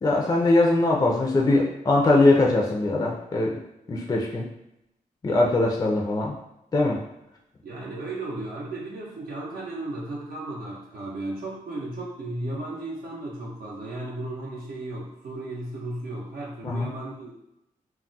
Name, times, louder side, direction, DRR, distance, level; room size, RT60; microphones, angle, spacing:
voice 1, 0.0-3.6 3.9-4.5 5.2-6.4 6.7-7.0 16.6-16.9, left 2 dB, 25° left, -2 dB, 0.4 m, -21 dB
voice 2, 7.6-17.3, right 2 dB, 85° right, -5 dB, 0.6 m, -35 dB
2.3 x 2.0 x 3.8 m, 0.85 s
wide cardioid pair, 95°, 15 cm